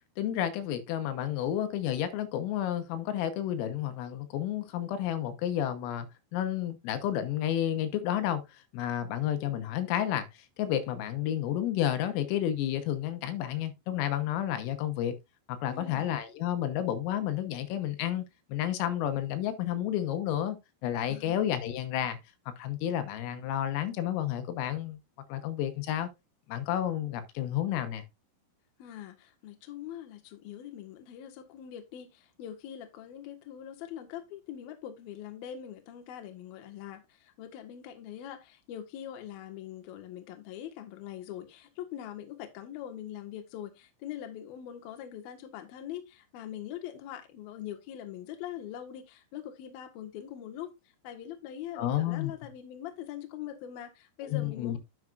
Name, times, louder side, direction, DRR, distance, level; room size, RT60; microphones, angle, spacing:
voice 1, 0.2-6.1 6.3-15.1 15.5-18.3 18.5-20.6 20.8-22.2 22.5-25.0 25.3-26.1 26.5-28.0 51.8-52.3 54.3-54.8, left 11 dB, 85° left, 3.7 m, -31 dB
voice 2, 15.7-16.2 21.1-21.4 28.8-50.7 51.0-54.8, left 10 dB, 65° left, 2.7 m, -42 dB
10.5 x 7.2 x 2.5 m
omnidirectional pair, 5.9 m